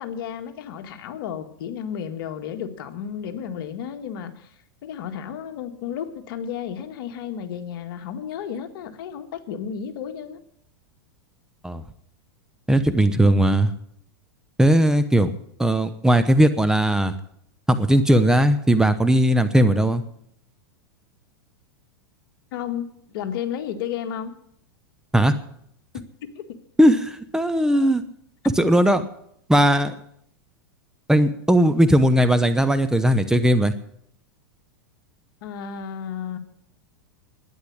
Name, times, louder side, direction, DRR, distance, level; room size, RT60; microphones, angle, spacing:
voice 1, 0.0-4.5 4.8-10.4 22.5-24.3 26.3-26.4 35.4-36.4, left 8 dB, 65° left, 7 dB, 1.6 m, -32 dB
voice 2, 12.7-13.7 14.6-15.3 15.6-17.1 17.7-20.0 25.1-25.3 26.8-28.0 28.5-29.0 29.5-29.9 31.1-33.7, right 1 dB, 5° right, 10 dB, 0.8 m, -18 dB
12.0 x 9.6 x 8.5 m, 0.70 s
hypercardioid pair, 115°, 13 cm